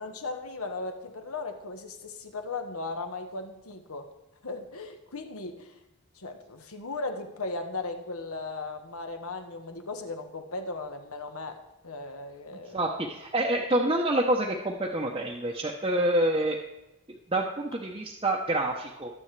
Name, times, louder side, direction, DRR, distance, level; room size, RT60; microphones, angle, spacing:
voice 1, 0.0-4.1 4.4-5.8 6.1-12.9, left 3 dB, 80° left, 6 dB, 1.2 m, -37 dB
voice 2, 12.7-16.6 17.3-19.1, right 1 dB, 25° right, -2 dB, 0.7 m, -27 dB
21.0 x 7.7 x 3.3 m, 0.94 s
head